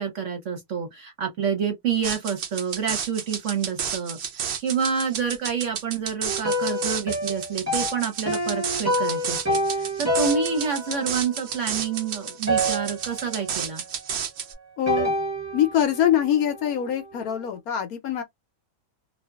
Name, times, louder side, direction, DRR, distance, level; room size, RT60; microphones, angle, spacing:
voice 1, 0.0-13.8, right 7 dB, 55° right, 0.9 m, -28 dB
sound 1, 2.0-14.5, right 7 dB, 80° right, 0.5 m, -31 dB
sound 2, 6.3-12.1 12.5-13.6 14.9-17.1, equal, 15° right, 0.5 m, -28 dB
voice 2, 14.8-15.1 15.5-18.2, left 10 dB, 70° left, 1.0 m, -24 dB
2.7 x 2.4 x 2.3 m
omnidirectional pair, 1.8 m